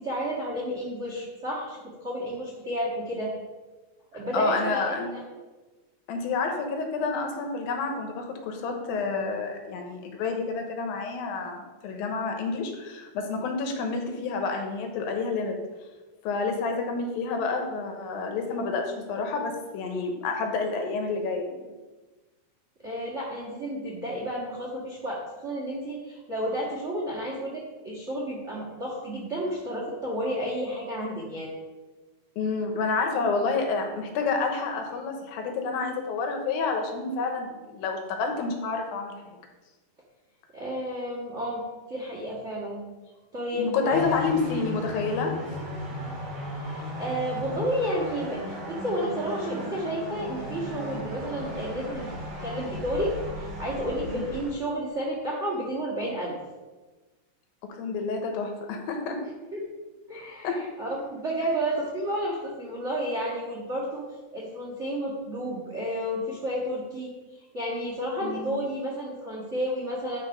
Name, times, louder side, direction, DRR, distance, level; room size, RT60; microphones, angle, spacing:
voice 1, 0.0-3.3 4.1-5.2 22.8-31.6 40.5-42.8 43.3-44.1 46.6-48.4 48.7-52.1 52.4-56.3 59.5-59.6 60.1-64.0 64.3-70.2, equal, 85° right, -4 dB, 0.6 m, -31 dB
voice 2, 4.3-5.1 6.1-15.6 16.2-21.5 32.4-39.3 43.5-45.6 54.0-54.2 57.8-59.2 60.4-60.6 68.2-68.6, left 4 dB, 80° left, 3 dB, 2.8 m, -29 dB
sound 1, 43.9-54.5, left 1 dB, 45° right, 3.6 m, -36 dB
11.0 x 4.2 x 5.2 m, 1.2 s
omnidirectional pair, 4.2 m